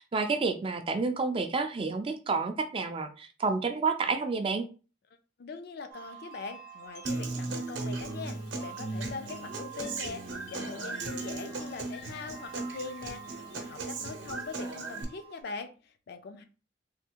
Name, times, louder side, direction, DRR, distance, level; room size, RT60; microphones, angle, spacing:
voice 1, 0.0-4.6, right 4 dB, 30° right, 7 dB, 0.3 m, -29 dB
voice 2, 5.4-13.3 13.5-16.4, left 4 dB, 55° left, 8 dB, 0.4 m, -42 dB
sound 1, 5.9-15.4, right 4 dB, 85° left, 0.9 m, -49 dB
Human voice / Acoustic guitar, 7.0-15.0, right 3 dB, 65° right, 0.7 m, -37 dB
3.4 x 2.4 x 2.8 m, 0.35 s
head